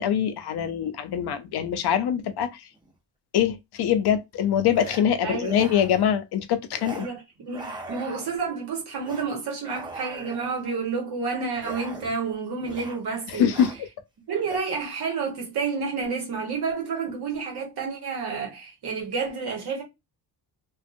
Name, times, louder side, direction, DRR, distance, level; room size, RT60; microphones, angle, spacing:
voice 1, 0.0-2.5 3.3-7.1 13.3-13.9, left 9 dB, 65° left, 0.5 m, -24 dB
sound 1, 2.8-2.9 4.7-5.0 5.4-6.1 6.7-7.1 7.4-8.5 9.0-9.3 9.6-10.6 11.6-12.3 12.6-13.0 13.3-13.8 14.4-14.6, right 2 dB, 10° right, 0.6 m, -40 dB
voice 2, 5.2-5.6 6.9-13.5 14.3-19.8, right 5 dB, 65° right, 1.1 m, -30 dB
2.6 x 2.3 x 2.5 m
cardioid pair, 140°, 42 cm